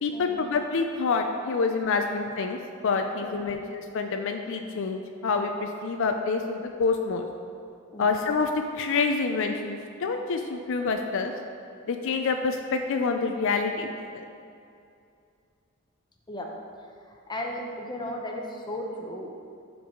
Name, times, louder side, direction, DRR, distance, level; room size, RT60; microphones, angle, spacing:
voice 1, 0.0-2.6 2.8-7.3 8.0-11.3 11.9-14.2, left 4 dB, 60° left, 5 dB, 0.4 m, -27 dB
voice 2, 3.2-3.6 7.9-8.1 16.3-16.5 17.1-19.3, left 1 dB, 20° left, 1 dB, 0.8 m, -36 dB
12.0 x 4.7 x 3.7 m, 2.5 s
head